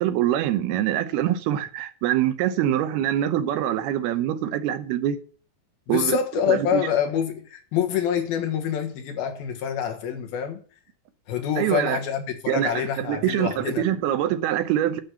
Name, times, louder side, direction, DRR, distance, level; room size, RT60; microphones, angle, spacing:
voice 1, 0.0-5.2 5.9-6.2 6.5-6.8 11.6-12.0 12.5-12.7 13.0-15.0, right 11 dB, 90° right, 2.9 m, -24 dB
voice 2, 5.9-10.6 11.3-13.9, left 8 dB, 75° left, 3.2 m, -26 dB
9.8 x 6.5 x 7.1 m
omnidirectional pair, 4.4 m